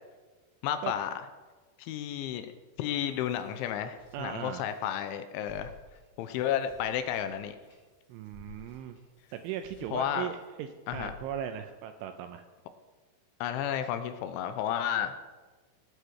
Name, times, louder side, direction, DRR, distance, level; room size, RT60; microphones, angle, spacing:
voice 1, 0.6-1.1 1.8-2.5 2.8-5.7 6.2-7.6 9.9-10.3 10.9-11.1 13.4-15.1, left 10 dB, 85° left, 9 dB, 2.9 m, -32 dB
sound 1, 3.0-5.1 5.4-10.5 10.9-11.6, left 4 dB, 20° left, 4.5 m, -55 dB
voice 2, 4.1-4.7 8.1-9.0 9.3-12.4, right 10 dB, 80° right, 7 dB, 2.9 m, -38 dB
18.0 x 8.3 x 6.1 m, 1.3 s
omnidirectional pair, 6.0 m